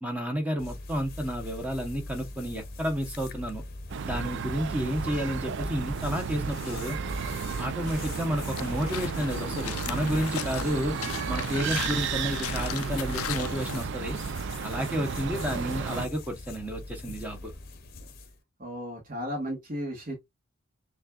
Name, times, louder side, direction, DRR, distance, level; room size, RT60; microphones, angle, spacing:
voice 1, 0.0-3.6 4.0-7.0 7.6-11.0 11.3-14.2 14.6-17.5, equal, 5° right, 0.9 m, -31 dB
sound 1, 0.6-18.4, left 2 dB, 45° left, 0.8 m, -41 dB
sound 2, 3.9-16.1, right 6 dB, 55° right, 0.3 m, -33 dB
sound 3, 8.5-13.8, left 9 dB, 85° left, 0.4 m, -37 dB
voice 2, 18.6-20.1, equal, 40° right, 1.5 m, -34 dB
6.3 x 2.4 x 2.3 m
head